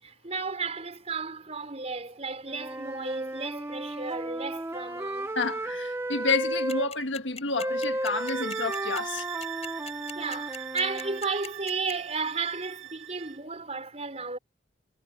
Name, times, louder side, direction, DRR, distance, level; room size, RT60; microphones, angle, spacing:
voice 1, 0.0-5.3 10.1-14.4, right 4 dB, 35° right, 4.4 m, -33 dB
Wind instrument woodwind instrument, 2.4-6.9 7.6-11.2, right 1 dB, 15° right, 1.0 m, -34 dB
voice 2, 5.3-9.2, left 3 dB, 75° left, 1.6 m, -30 dB
sound 1, 6.7-11.9, left 6 dB, 35° left, 6.2 m, -40 dB
sound 2, 8.0-13.4, right 14 dB, 90° right, 2.3 m, -41 dB
head